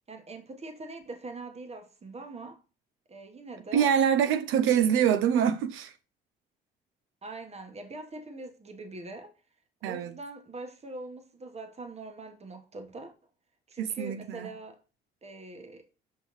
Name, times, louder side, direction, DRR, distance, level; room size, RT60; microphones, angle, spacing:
voice 1, 0.1-2.6 3.1-3.9 4.5-4.9 7.2-9.3 9.8-13.1 13.7-14.8 15.2-15.9, right 2 dB, 30° right, 1.2 m, -43 dB
voice 2, 3.7-5.9 9.8-10.1 13.8-14.5, right 8 dB, 90° right, 0.5 m, -25 dB
5.7 x 5.4 x 3.0 m
cardioid pair, 90°, 20 cm